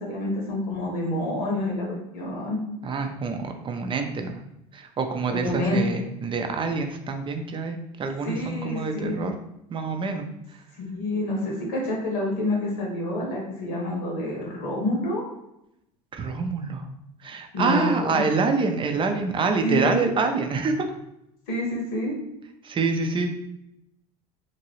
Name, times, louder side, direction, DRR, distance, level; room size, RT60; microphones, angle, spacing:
voice 1, 0.0-2.6 5.3-6.0 8.2-9.2 10.8-15.2 17.5-18.2 19.6-20.0 21.5-22.1, left 1 dB, 70° left, -2 dB, 1.3 m, -28 dB
voice 2, 2.8-4.3 4.7-9.3 9.7-10.3 10.5-10.6 16.1-16.8 17.2-20.9 22.6-23.3, right 4 dB, 30° right, 5 dB, 0.6 m, -26 dB
3.0 x 2.6 x 2.9 m, 0.83 s
hypercardioid pair, 75°, 18 cm